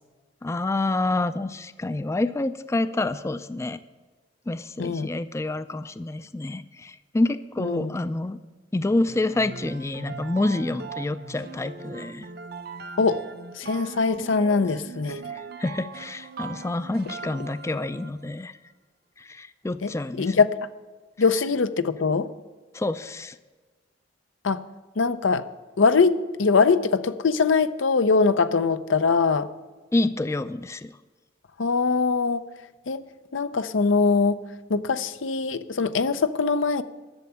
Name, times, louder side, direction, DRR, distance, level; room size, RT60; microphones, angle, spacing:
voice 1, 0.4-3.8 4.5-8.4 8.7-12.3 15.3-18.6 19.2-20.4 22.7-23.4 29.9-31.0, left 2 dB, 15° left, 13 dB, 0.3 m, -28 dB
voice 2, 7.6-7.9 13.0-13.2 13.5-15.2 19.8-19.9 20.2-20.7 21.2-22.3 24.4-24.7 25.0-25.5 25.8-29.5 31.6-32.4 32.9-33.0 33.3-34.4 34.7-36.8, left 4 dB, 90° left, 12 dB, 0.6 m, -22 dB
sound 1, 9.1-18.3, right 5 dB, 55° right, 0.7 m, -40 dB
11.5 x 6.9 x 8.6 m, 1.3 s
head